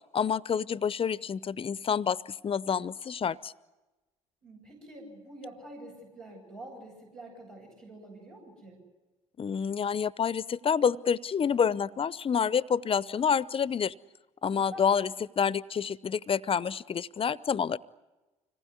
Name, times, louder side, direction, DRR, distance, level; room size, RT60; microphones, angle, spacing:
voice 1, 0.1-3.5 9.4-13.9 14.4-15.1 15.4-17.8, left 7 dB, 35° left, 19 dB, 0.7 m, -28 dB
voice 2, 4.4-8.8 14.5-14.8, right 1 dB, 80° right, -4 dB, 7.9 m, -47 dB
25.5 x 19.0 x 9.7 m, 1.1 s
hypercardioid pair, 50°, 16 cm